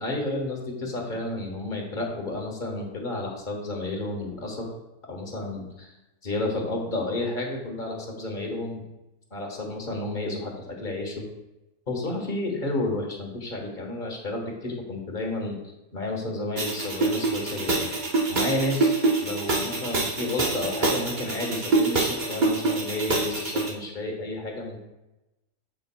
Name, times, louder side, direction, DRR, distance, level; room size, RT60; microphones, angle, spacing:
voice 1, 0.0-4.7 5.1-5.9 6.2-8.8 9.3-11.3 11.9-15.5 15.9-17.9 18.3-24.8, left 2 dB, 35° left, 0 dB, 1.4 m, -31 dB
sound 1, 16.6-23.7, right 3 dB, 35° right, 1.0 m, -26 dB
11.5 x 5.0 x 2.3 m, 0.97 s
omnidirectional pair, 1.5 m